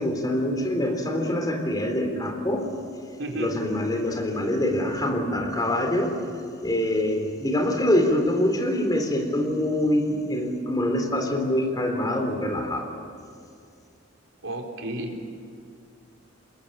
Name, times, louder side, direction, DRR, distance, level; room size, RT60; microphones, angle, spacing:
voice 1, 0.0-2.7 3.3-6.2 6.6-12.9, left 1 dB, 20° left, 3 dB, 3.7 m, -25 dB
voice 2, 3.2-3.5 14.4-15.4, right 1 dB, 85° right, 1 dB, 4.3 m, -32 dB
27.0 x 21.5 x 8.8 m, 2.4 s
head